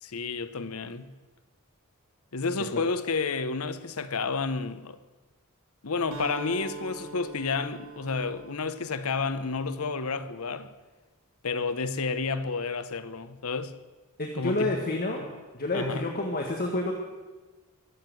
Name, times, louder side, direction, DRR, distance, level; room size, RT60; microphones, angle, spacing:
voice 1, 0.0-1.1 2.3-5.0 5.8-10.7 11.4-13.7 14.4-14.8 15.7-16.0, left 4 dB, 70° left, 0.9 m, -30 dB
Acoustic guitar, 6.1-10.0, right 2 dB, 70° right, 3.9 m, -43 dB
voice 2, 14.2-15.2 15.5-16.9, left 2 dB, 45° left, 1.5 m, -29 dB
23.0 x 7.7 x 7.8 m
head